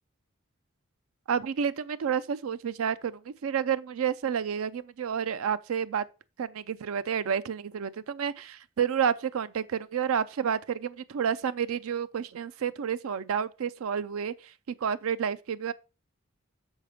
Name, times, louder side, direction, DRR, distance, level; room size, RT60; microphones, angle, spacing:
voice 1, 1.3-6.1 6.4-14.5 14.8-15.7, right 7 dB, 80° right, 0.4 m, -30 dB
6.4 x 5.7 x 4.9 m
head